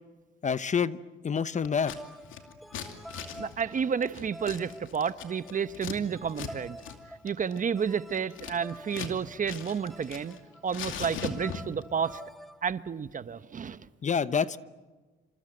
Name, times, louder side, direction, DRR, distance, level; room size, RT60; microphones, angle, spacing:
voice 1, 0.4-1.0 1.2-1.9 14.0-14.6, left 6 dB, 35° left, 15 dB, 0.9 m, -27 dB
sound 1, 1.5-12.6, equal, ahead, 1.5 m, -49 dB
Scissors, 1.6-2.0 2.3-6.0 6.3-6.5 6.8-7.0 7.3-9.2 9.4-10.4 10.7-11.8, left 8 dB, 80° left, 2.6 m, -40 dB
voice 2, 3.4-6.8 7.1-10.4 10.6-12.2 12.6-13.9, right 7 dB, 40° right, 13 dB, 1.0 m, -31 dB
27.0 x 26.5 x 7.8 m, 1.3 s
cardioid pair, 90°, 20 cm